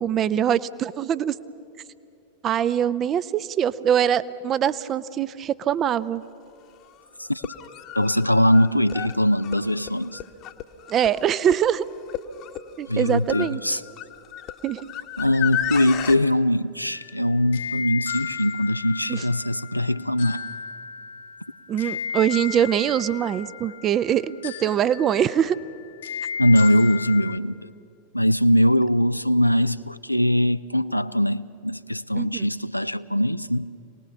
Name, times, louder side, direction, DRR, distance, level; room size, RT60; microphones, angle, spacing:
voice 1, 0.0-1.4 2.4-6.2 10.9-11.8 12.8-13.6 14.6-14.8 19.1-19.2 21.7-25.6 32.2-32.5, right 9 dB, 30° right, 0.6 m, -23 dB
sound 1, 6.2-6.3 7.3-16.2, left 10 dB, 40° left, 1.1 m, -34 dB
voice 2, 8.0-10.2 12.9-13.8 15.2-20.4 26.4-27.7 28.1-33.7, left 1 dB, 90° left, 0.5 m, -21 dB
sound 2, 16.9-27.4, left 7 dB, 65° left, 1.3 m, -35 dB
27.0 x 19.5 x 7.2 m
figure-of-eight pair, 90°, 0 cm